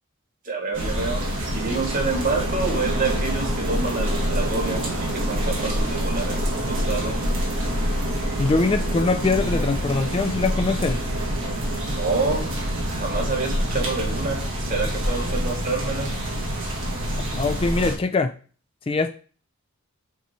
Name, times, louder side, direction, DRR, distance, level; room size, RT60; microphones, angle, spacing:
voice 1, 0.4-1.2 1.5-7.2 11.9-12.5 12.9-16.1, right 3 dB, 40° right, 1.3 m, -28 dB
sound 1, 0.7-18.0, equal, 60° right, 1.7 m, -26 dB
voice 2, 8.4-11.0 17.4-18.3 18.9-19.2, left 3 dB, 25° left, 0.3 m, -22 dB
6.0 x 4.2 x 4.2 m
head